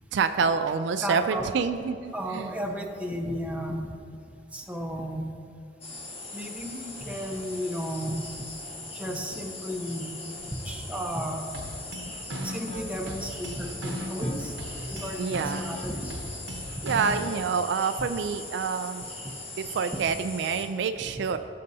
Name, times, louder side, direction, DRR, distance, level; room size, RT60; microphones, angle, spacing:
voice 1, 0.1-2.5 15.2-15.7 16.8-19.1 19.6-21.4, right 5 dB, 70° right, 9 dB, 0.4 m, -27 dB
voice 2, 1.0-1.5 2.1-3.9 4.5-5.3 6.3-8.2 8.9-10.1 10.5-11.5 12.4-14.6 14.9-16.1 16.9-17.0, equal, 10° right, 2 dB, 0.8 m, -33 dB
sound 1, 5.8-20.7, left 2 dB, 35° left, 1.5 m, -40 dB
sound 2, 11.5-17.6, equal, 90° right, 1.0 m, -37 dB
16.0 x 6.6 x 2.7 m, 2.6 s
head